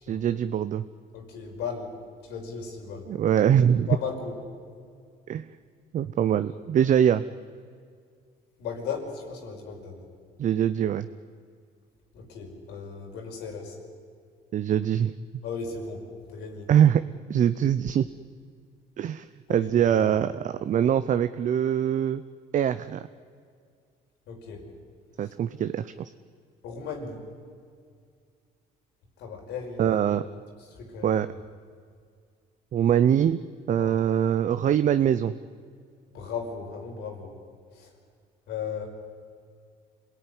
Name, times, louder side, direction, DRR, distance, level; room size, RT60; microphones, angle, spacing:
voice 1, 0.0-0.8 3.1-3.9 5.3-5.5 5.9-7.2 10.4-11.1 14.5-15.1 16.7-17.0 17.3-18.1 19.0-22.2 22.5-23.0 25.2-26.1 29.8-30.2 31.0-31.3 32.7-33.4 33.7-35.3, right 9 dB, 50° right, 11 dB, 0.7 m, -23 dB
voice 2, 1.1-1.9 2.2-3.1 3.9-4.4 8.6-10.0 12.1-13.8 15.4-16.7 19.5-19.7 24.3-24.7 25.2-25.3 26.6-27.2 29.2-30.0 30.6-31.2 33.8-34.0 36.1-37.4 37.7-37.9 38.5-38.9, left 5 dB, 80° left, 2 dB, 5.2 m, -36 dB
26.5 x 17.5 x 9.8 m, 2.2 s
cardioid pair, 110°, 17 cm